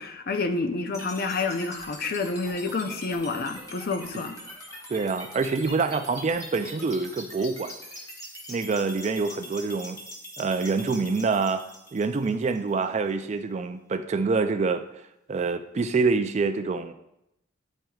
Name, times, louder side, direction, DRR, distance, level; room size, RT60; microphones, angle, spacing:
voice 1, 0.0-4.4, left 3 dB, 50° left, 7 dB, 0.5 m, -29 dB
sound 1, 0.9-13.0, equal, 20° left, 1.1 m, -43 dB
voice 2, 4.9-7.7 8.5-10.0 10.4-11.6 11.9-14.8 15.3-16.9, right 4 dB, 35° right, 9 dB, 0.3 m, -26 dB
10.0 x 4.5 x 2.3 m, 0.84 s
head